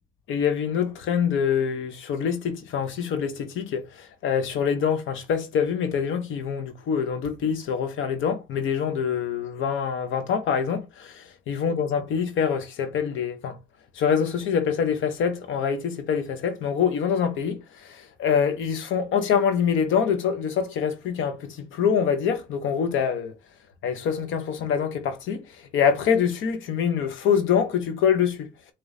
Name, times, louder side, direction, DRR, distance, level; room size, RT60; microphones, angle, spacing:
voice 1, 0.3-11.1 11.5-13.6 14.0-23.3 23.8-25.4 25.7-28.5, left 7 dB, 80° left, 0.8 m, -25 dB
4.8 x 3.0 x 2.6 m
cardioid pair, 90°, 20 cm